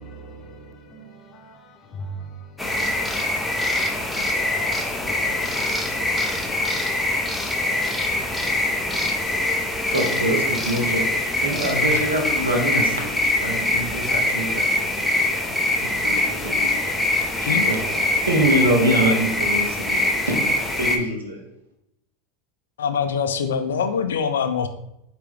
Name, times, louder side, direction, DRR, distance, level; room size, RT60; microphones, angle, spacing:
voice 1, 0.0-3.1, right 2 dB, 40° left, 0.8 m, -40 dB
sound 1, 2.6-21.0, left 2 dB, 10° left, 0.6 m, -23 dB
voice 2, 9.8-15.5 15.8-20.4 20.8-21.4, right 1 dB, 90° right, 1.0 m, -25 dB
voice 3, 22.8-24.7, left 6 dB, 80° left, 0.4 m, -24 dB
4.6 x 2.9 x 3.4 m
hypercardioid pair, 90°, 0 cm